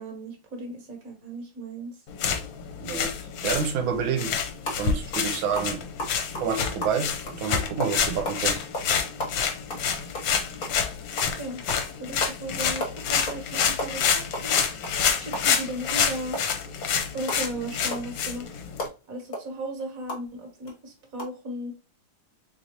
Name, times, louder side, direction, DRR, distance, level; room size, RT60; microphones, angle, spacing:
voice 1, 0.0-2.0 11.4-11.6 12.0-16.4 17.1-18.5 19.1-21.7, right 1 dB, 50° right, 1.4 m, -36 dB
sound 1, 2.1-18.9, left 7 dB, 70° left, 1.4 m, -28 dB
voice 2, 2.8-3.1 3.4-4.3 4.7-5.8 6.4-8.6, right 6 dB, 80° right, 1.4 m, -28 dB
sound 2, 4.7-4.8 5.1-5.3 5.6-8.4 8.7-8.9 9.2-10.8 11.2-11.4 11.7-11.8 12.2-12.4 12.6-13.5 13.7-16.0 16.3-20.3 20.7-20.8 21.1-21.2, left 1 dB, 45° left, 1.4 m, -34 dB
4.0 x 3.4 x 2.9 m
omnidirectional pair, 2.2 m